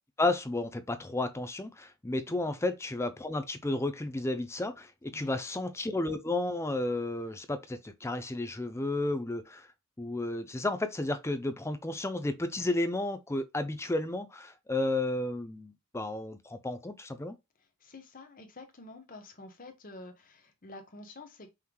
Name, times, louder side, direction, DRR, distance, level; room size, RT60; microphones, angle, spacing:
voice 1, 0.2-9.7 10.0-17.4, left 2 dB, 10° left, 0.5 m, -32 dB
voice 2, 17.8-21.5, left 2 dB, 40° left, 1.0 m, -49 dB
5.6 x 3.2 x 2.3 m
head